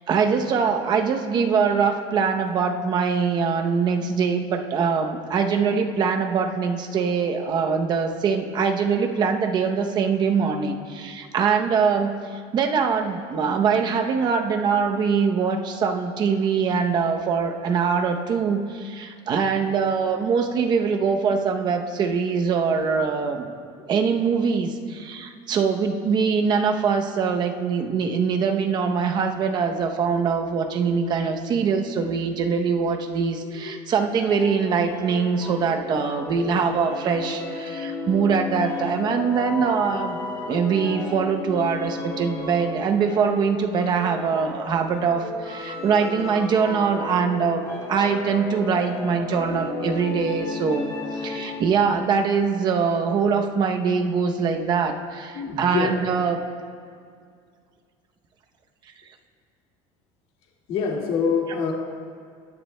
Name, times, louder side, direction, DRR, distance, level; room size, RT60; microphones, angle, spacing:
voice 1, 0.1-23.5 23.9-40.2 40.5-56.4, right 5 dB, 35° right, 5 dB, 0.8 m, -23 dB
voice 2, 33.4-33.8 36.5-36.7 37.4-37.5 51.4-51.5 55.3-56.0 60.7-61.7, left 5 dB, 55° left, -2 dB, 2.1 m, -27 dB
sound 1, 34.1-51.8, left 3 dB, 30° left, 2.6 m, -34 dB
20.5 x 9.9 x 2.2 m, 2.1 s
cardioid pair, 155°, 12 cm